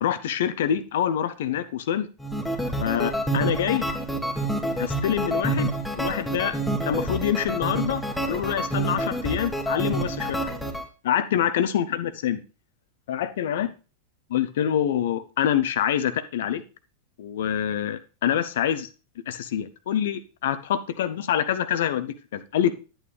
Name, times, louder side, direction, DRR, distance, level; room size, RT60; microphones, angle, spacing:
voice 1, 0.0-2.1 2.8-3.9 4.8-6.5 6.8-8.0 8.3-10.6 11.0-12.4 13.1-13.7 14.3-16.6 17.2-18.9 19.3-22.7, left 10 dB, 55° left, 12 dB, 0.8 m, -26 dB
sound 1, 2.2-10.8, right 1 dB, 5° left, 1.6 m, -28 dB
10.5 x 8.9 x 3.3 m, 0.34 s
figure-of-eight pair, 90°, 0 cm